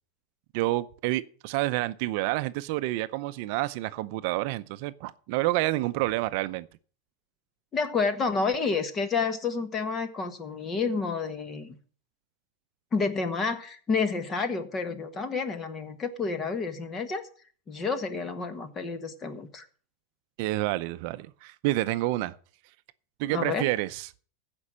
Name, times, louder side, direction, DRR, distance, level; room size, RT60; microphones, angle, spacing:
voice 1, 0.5-6.7 20.4-22.3 23.2-24.1, right 17 dB, 50° right, 0.6 m, -28 dB
voice 2, 7.7-11.8 12.9-17.3 17.7-19.7 23.3-23.7, left 4 dB, 20° left, 1.4 m, -29 dB
15.0 x 5.3 x 7.4 m
supercardioid pair, 155°, 0 cm